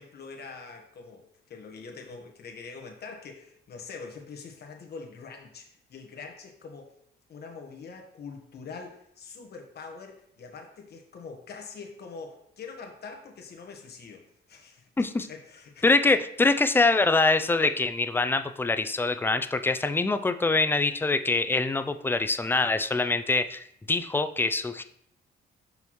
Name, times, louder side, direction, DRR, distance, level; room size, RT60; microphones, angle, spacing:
voice 1, 0.0-6.9 7.3-14.9 15.3-15.9, left 4 dB, 55° left, 2 dB, 1.3 m, -44 dB
voice 2, 15.0-15.3 15.8-24.8, left 3 dB, 10° left, 9 dB, 0.4 m, -24 dB
5.9 x 5.6 x 3.1 m, 0.71 s
cardioid pair, 90°, 20 cm